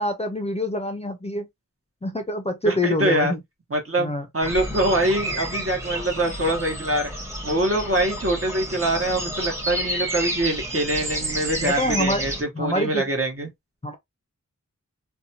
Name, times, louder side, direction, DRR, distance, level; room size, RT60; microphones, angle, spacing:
voice 1, 0.0-1.5 2.0-3.4 4.0-4.3 11.6-12.2 12.5-13.1 13.8-14.0, left 1 dB, 20° left, 0.5 m, -25 dB
voice 2, 2.6-3.3 3.7-7.1 7.4-13.5, right 1 dB, 45° right, 1.1 m, -24 dB
sound 1, 4.4-12.4, right 1 dB, 10° right, 1.0 m, -30 dB
2.7 x 2.2 x 2.7 m
wide cardioid pair, 55°, 31 cm